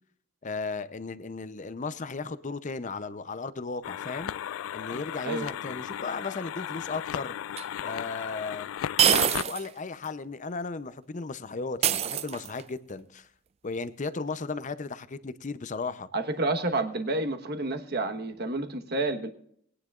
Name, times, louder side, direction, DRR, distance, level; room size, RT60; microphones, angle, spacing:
voice 1, 0.4-4.3 4.7-7.4 7.8-8.7 9.0-13.3 13.6-16.1, left 4 dB, 40° left, 0.6 m, -35 dB
sound 1, 3.8-9.4, left 10 dB, 90° left, 0.3 m, -35 dB
sound 2, 7.6-7.7 9.0-9.7 10.0-10.1 11.8-12.7, right 9 dB, 30° right, 0.3 m, -24 dB
voice 2, 16.1-19.3, right 2 dB, 55° right, 1.2 m, -29 dB
20.0 x 9.7 x 2.4 m
head